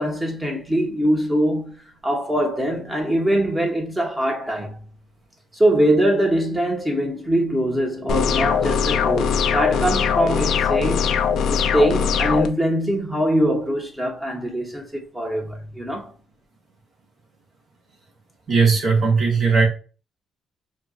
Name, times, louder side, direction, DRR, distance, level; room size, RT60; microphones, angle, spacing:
voice 1, 0.0-4.8 5.5-11.2 11.5-16.1, right 1 dB, 15° right, 1.0 m, -22 dB
sound 1, 8.1-12.5, left 7 dB, 75° left, 0.4 m, -21 dB
voice 2, 18.5-19.6, right 4 dB, 60° right, 1.4 m, -17 dB
4.3 x 2.3 x 2.6 m
cardioid pair, 90°, 0 cm